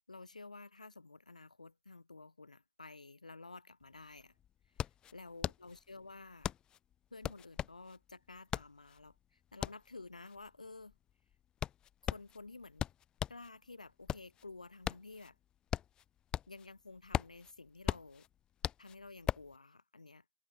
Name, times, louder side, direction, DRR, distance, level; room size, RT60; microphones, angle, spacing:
voice 1, 0.1-4.4 5.1-6.5 7.1-11.0 12.1-12.9 13.3-15.4 16.5-18.3 18.8-20.2, left 3 dB, 85° left, 5.7 m, -52 dB
sound 1, 3.8-3.9 4.2-13.5 13.9-16.7 17.0-19.6, left 10 dB, 20° left, 0.3 m, -39 dB
figure-of-eight pair, 110°, 4 cm